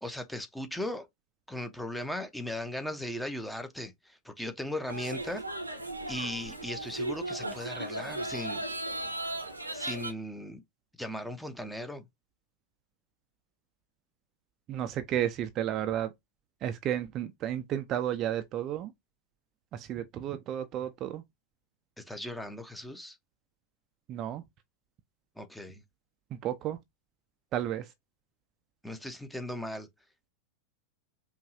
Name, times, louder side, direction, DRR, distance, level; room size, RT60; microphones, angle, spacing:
voice 1, 0.0-1.1 1.5-5.4 6.1-8.6 9.7-10.6 11.0-12.1 22.0-23.2 25.4-25.8 28.8-29.9, left 1 dB, 5° left, 0.7 m, -37 dB
sound 1, 4.9-10.1, right 2 dB, 85° right, 0.8 m, -36 dB
voice 2, 14.7-16.1 16.6-18.9 19.7-21.2 24.1-24.4 26.3-26.8 27.5-27.8, right 11 dB, 35° right, 0.4 m, -32 dB
5.3 x 2.4 x 2.6 m
figure-of-eight pair, 90°, 0 cm